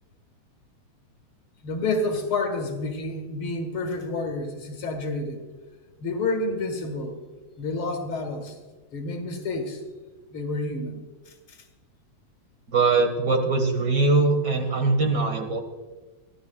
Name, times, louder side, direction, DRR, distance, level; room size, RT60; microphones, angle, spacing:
voice 1, 1.6-5.4 6.0-7.2 7.6-8.6 8.9-9.8 10.3-11.0 11.3-11.6, left 2 dB, 80° left, 5 dB, 2.6 m, -29 dB
voice 2, 12.7-15.6, right 3 dB, 55° right, 5 dB, 2.1 m, -22 dB
29.5 x 12.0 x 2.3 m, 1.3 s
omnidirectional pair, 2.3 m